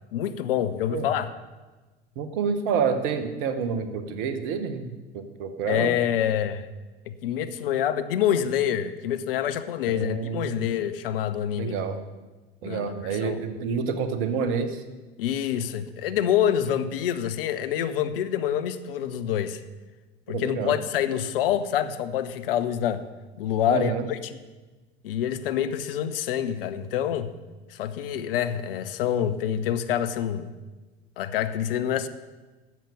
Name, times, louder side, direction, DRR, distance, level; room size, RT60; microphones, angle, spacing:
voice 1, 0.1-1.3 5.7-6.7 7.1-11.8 12.6-13.4 15.2-19.6 20.3-23.0 23.4-24.4 25.0-27.3 27.7-30.5 31.2-32.1, left 10 dB, 60° left, 11 dB, 0.7 m, -26 dB
voice 2, 2.2-5.9 9.9-10.7 11.6-12.0 12.6-14.8 20.3-20.8 23.7-24.1, right 6 dB, 50° right, 10 dB, 1.1 m, -28 dB
10.5 x 7.4 x 6.9 m, 1.2 s
figure-of-eight pair, 75°, 32 cm